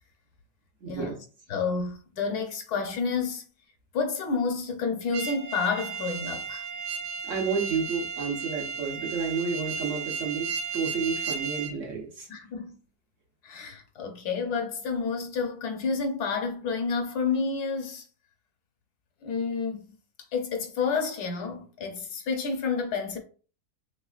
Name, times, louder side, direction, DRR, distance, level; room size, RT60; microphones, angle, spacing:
voice 1, 0.8-1.2 7.2-10.5 10.7-12.3, right 5 dB, 55° right, 1.0 m, -31 dB
voice 2, 1.5-3.4 3.9-6.7 12.3-12.8 13.4-18.0 19.2-19.9 20.3-23.2, left 5 dB, 75° left, 1.2 m, -30 dB
sound 1, 5.1-11.7, right 5 dB, 90° right, 1.2 m, -34 dB
3.5 x 3.1 x 2.3 m
omnidirectional pair, 1.7 m